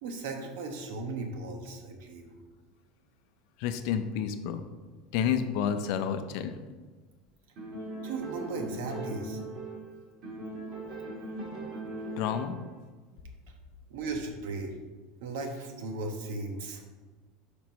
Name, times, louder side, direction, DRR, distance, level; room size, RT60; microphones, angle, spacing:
voice 1, 0.0-2.3 8.0-9.4 13.9-14.8 15.2-16.8, right 3 dB, 75° right, 3 dB, 1.1 m, -36 dB
voice 2, 3.6-4.7 5.1-6.6 12.2-12.6, left 8 dB, 55° left, 9 dB, 0.5 m, -30 dB
sound 1, 7.6-9.9 10.2-12.7, right 2 dB, 45° right, 2.0 m, -39 dB
5.2 x 4.6 x 5.2 m, 1.3 s
supercardioid pair, 165°, 0 cm